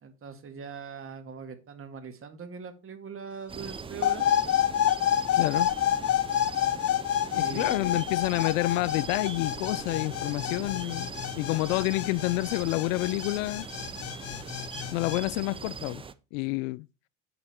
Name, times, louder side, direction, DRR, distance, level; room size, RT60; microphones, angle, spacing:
voice 1, 0.0-4.3 7.3-8.1, right 6 dB, 35° right, 2.0 m, -41 dB
sound 1, 3.5-16.1, right 5 dB, 15° right, 0.5 m, -41 dB
sound 2, 4.0-15.2, left 11 dB, 40° left, 0.7 m, -28 dB
voice 2, 5.3-5.7 7.3-11.1 11.4-13.7 14.9-16.0 16.3-16.9, left 21 dB, 85° left, 0.5 m, -28 dB
8.6 x 6.9 x 4.3 m
supercardioid pair, 105°, 38 cm